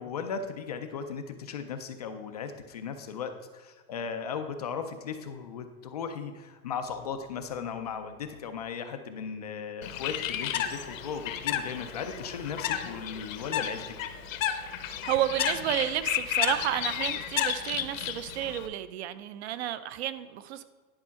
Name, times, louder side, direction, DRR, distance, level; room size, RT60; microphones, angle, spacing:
voice 1, 0.0-13.9, left 6 dB, 30° left, 7 dB, 0.4 m, -37 dB
Bird, 9.8-18.7, left 10 dB, 60° left, 0.9 m, -32 dB
voice 2, 14.8-20.6, right 12 dB, 45° right, 14 dB, 0.6 m, -31 dB
11.0 x 5.5 x 5.7 m, 1.5 s
supercardioid pair, 165°, 44 cm